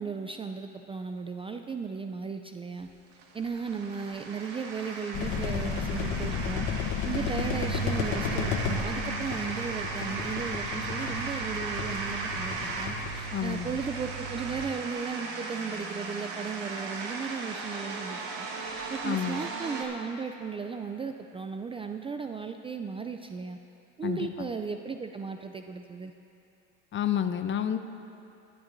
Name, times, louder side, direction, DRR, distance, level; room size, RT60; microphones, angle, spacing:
voice 1, 0.0-2.9 3.3-6.7 7.0-18.5 18.9-23.6 24.0-26.1, right 5 dB, 15° right, 6 dB, 0.4 m, -36 dB
sound 1, 2.8-19.9, right 3 dB, 65° right, 1.7 m, -37 dB
sound 2, 5.1-14.7, left 4 dB, 60° left, 1.1 m, -33 dB
voice 2, 13.3-13.7 19.0-19.4 24.0-24.5 26.9-27.8, left 9 dB, 35° left, 9 dB, 0.7 m, -30 dB
19.5 x 11.5 x 2.6 m, 2.7 s
supercardioid pair, 90°, 33 cm